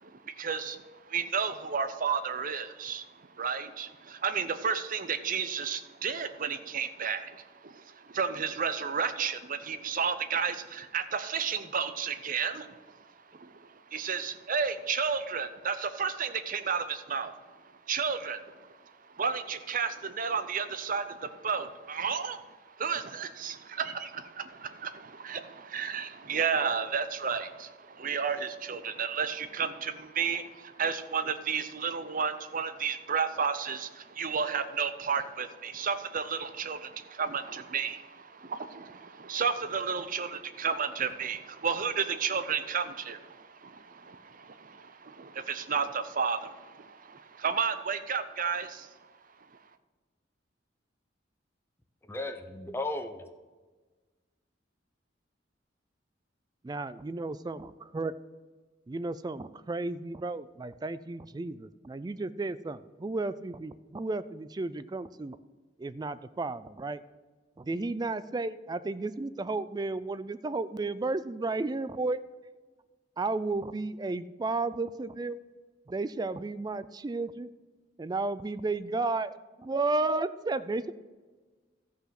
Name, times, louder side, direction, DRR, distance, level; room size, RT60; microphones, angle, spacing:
voice 1, 0.0-17.3 17.6-18.7 19.1-48.9, right 6 dB, 45° right, 11 dB, 0.7 m, -32 dB
voice 2, 52.0-53.3, left 2 dB, 15° left, 6 dB, 0.8 m, -35 dB
voice 3, 56.6-58.1 58.9-65.4 65.8-67.0 67.6-72.2 73.2-75.4 75.9-77.5 78.0-79.3 79.6-80.9, right 3 dB, 20° right, 15 dB, 0.3 m, -33 dB
13.5 x 5.7 x 5.9 m, 1.3 s
head